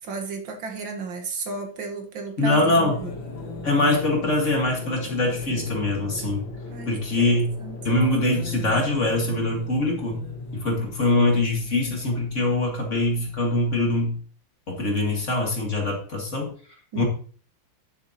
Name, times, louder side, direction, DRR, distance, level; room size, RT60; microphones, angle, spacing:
voice 1, 0.0-3.1 6.7-7.8 16.9-17.0, right 4 dB, 85° right, 4 dB, 2.2 m, -34 dB
voice 2, 2.4-3.0 3.6-6.4 6.9-7.6 7.8-10.2 10.5-14.2 14.7-16.5 17.0-17.1, left 2 dB, 40° left, 0 dB, 2.3 m, -23 dB
Train station boogy, 2.6-13.9, left 3 dB, 80° left, 2.2 m, -37 dB
10.5 x 6.9 x 2.9 m, 0.43 s
omnidirectional pair, 2.1 m